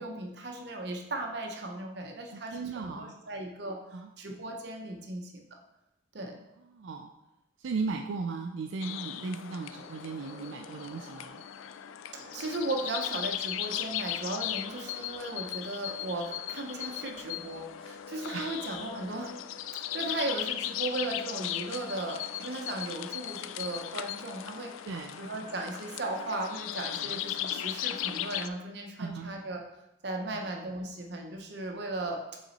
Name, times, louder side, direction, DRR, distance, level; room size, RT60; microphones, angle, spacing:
voice 1, 0.0-3.8 4.2-5.4 6.1-6.4 12.3-19.3 19.7-24.7 25.2-29.6 30.0-32.2, right 2 dB, 55° right, 2 dB, 0.7 m, -36 dB
voice 2, 2.3-3.1 3.9-4.1 6.7-7.1 7.6-11.4 18.3-18.5 24.9-25.2 27.0-27.2 29.0-29.3 30.3-30.4, right 4 dB, 80° right, 4 dB, 0.4 m, -37 dB
sound 1, 8.8-28.5, left 11 dB, 90° left, 0.3 m, -37 dB
sound 2, 9.8-11.5 12.2-13.0 13.6-14.1 14.6-15.5 16.2-17.2 18.3-19.0, right 1 dB, 30° right, 1.5 m, -53 dB
7.3 x 3.9 x 4.0 m, 0.92 s
head